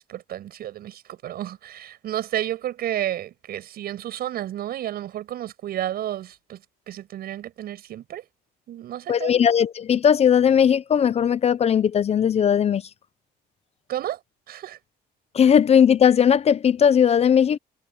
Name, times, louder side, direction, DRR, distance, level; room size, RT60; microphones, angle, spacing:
voice 1, 0.1-6.6 6.9-8.2 8.7-9.3 13.9-14.2 14.5-14.8, right 12 dB, 65° right, 7.4 m, -31 dB
voice 2, 9.1-12.8 15.3-17.6, left 8 dB, 40° left, 0.6 m, -18 dB
cardioid pair, 110°, 17 cm